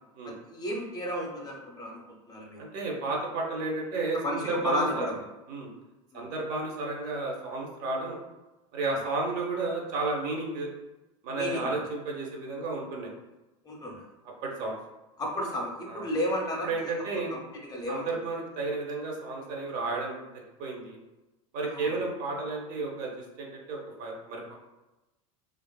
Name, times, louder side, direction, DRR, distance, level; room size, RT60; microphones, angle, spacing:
voice 1, 0.2-2.6 4.1-5.2 6.1-6.3 8.9-9.0 11.3-11.8 13.6-14.0 15.2-18.1 21.7-21.9, left 1 dB, 20° left, -1 dB, 0.5 m, -33 dB
voice 2, 2.6-5.0 5.5-5.7 6.1-8.2 8.7-10.7 11.2-13.1 14.4-14.7 15.9-16.0 16.6-17.4 17.9-20.2 20.6-21.0 21.5-23.1 23.4-24.6, right 3 dB, 50° right, 0 dB, 0.6 m, -32 dB
2.5 x 2.3 x 2.2 m, 1.0 s
hypercardioid pair, 80°, 18 cm